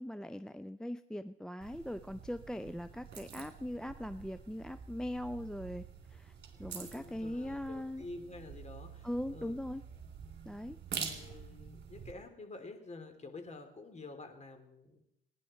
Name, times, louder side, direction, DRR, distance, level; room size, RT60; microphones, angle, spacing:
voice 1, 0.0-5.8 6.1-6.3 6.6-8.1 9.0-9.8 10.5-10.8, left 1 dB, 5° left, 12 dB, 0.5 m, -40 dB
sound 1, 1.6-12.1, right 7 dB, 60° right, 3.6 m, -47 dB
voice 2, 6.5-9.6 10.9-15.0, left 2 dB, 35° left, 6 dB, 3.2 m, -49 dB
30.0 x 10.5 x 4.4 m, 0.80 s
cardioid pair, 90°, 20 cm